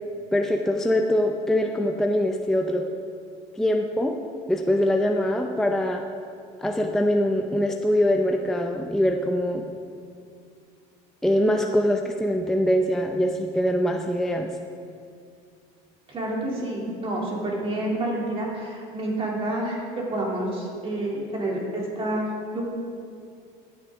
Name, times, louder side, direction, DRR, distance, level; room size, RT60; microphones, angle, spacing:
voice 1, 0.3-2.8 3.6-4.1 4.5-6.0 6.6-9.6 11.2-14.5, equal, 5° left, 3 dB, 0.5 m, -23 dB
voice 2, 16.1-22.6, right 1 dB, 30° right, -3 dB, 2.6 m, -29 dB
14.5 x 8.7 x 3.5 m, 2.4 s
cardioid pair, 130°, 18 cm